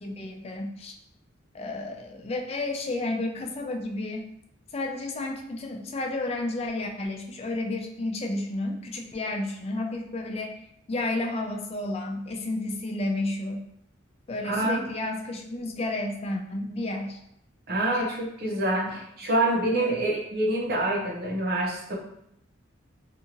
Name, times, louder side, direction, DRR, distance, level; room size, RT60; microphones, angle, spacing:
voice 1, 0.0-0.9 1.5-4.3 4.7-10.5 10.9-13.6 14.3-17.2 19.6-20.0, left 2 dB, 30° left, 2 dB, 0.3 m, -31 dB
voice 2, 14.4-14.8 17.7-21.9, right 1 dB, 50° right, -2 dB, 0.7 m, -26 dB
2.7 x 2.4 x 2.8 m, 0.76 s
head